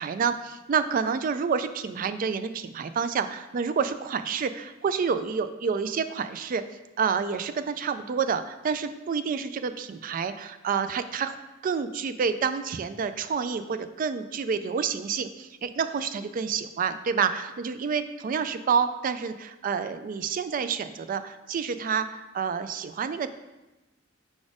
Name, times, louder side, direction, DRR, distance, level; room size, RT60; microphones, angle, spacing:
voice 1, 0.0-6.6 7.0-11.4 11.6-23.4, right 6 dB, 45° right, 11 dB, 0.3 m, -28 dB
4.9 x 4.1 x 4.9 m, 1.0 s
head